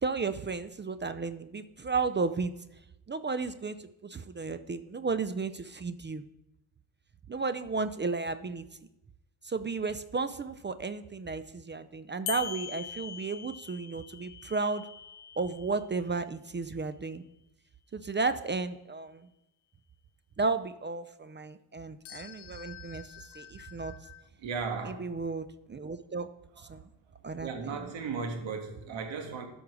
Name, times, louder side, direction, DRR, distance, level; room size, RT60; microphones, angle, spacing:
voice 1, 0.0-2.5 3.1-6.2 7.3-8.6 9.4-14.9 15.4-17.2 17.9-19.3 20.4-23.1 23.3-23.9 24.8-26.3 26.6-26.8 27.2-27.8, right 4 dB, 25° right, 0.6 m, -33 dB
sound 1, 12.3-16.1 22.0-24.3, left 9 dB, 85° left, 0.8 m, -44 dB
voice 2, 24.4-25.1 26.5-26.8 27.4-29.5, right 5 dB, 70° right, 1.8 m, -36 dB
12.5 x 5.5 x 4.8 m
supercardioid pair, 60°, 47 cm